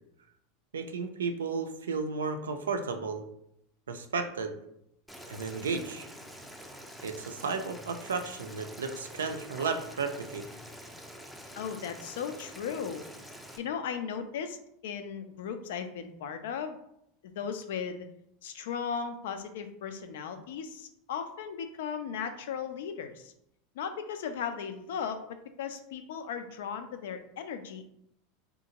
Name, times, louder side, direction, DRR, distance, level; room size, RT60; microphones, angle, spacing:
voice 1, 0.7-3.2 3.9-4.5 5.3-6.1 7.0-10.4, right 4 dB, 85° right, 7 dB, 0.3 m, -33 dB
Boiling, 5.1-13.6, equal, ahead, 0.4 m, -47 dB
voice 2, 11.6-13.1 13.6-14.6 14.8-16.8 17.2-18.1 18.4-23.3 23.8-27.9, left 7 dB, 70° left, 8 dB, 0.3 m, -36 dB
2.8 x 2.4 x 2.8 m, 0.77 s
hypercardioid pair, 85°, 0 cm